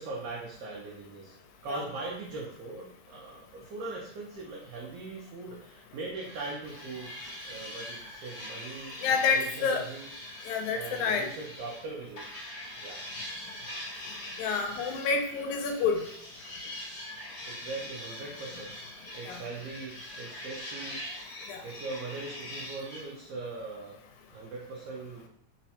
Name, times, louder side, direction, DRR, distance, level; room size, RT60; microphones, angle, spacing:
voice 1, 0.0-1.3 1.6-7.1 7.4-10.1 10.7-12.5 12.8-13.0 17.4-18.7 19.1-21.1 21.6-24.0 24.3-25.3, right 3 dB, 80° right, -3 dB, 1.4 m, -40 dB
sound 1, 6.1-11.8 12.2-23.0, left 1 dB, 55° left, 1.4 m, -43 dB
voice 2, 9.0-9.8 10.5-11.3 14.4-16.0 19.3-19.4 21.5-21.6, left 5 dB, 85° left, 5 dB, 2.0 m, -28 dB
4.6 x 2.1 x 2.8 m, 0.65 s
omnidirectional pair, 3.4 m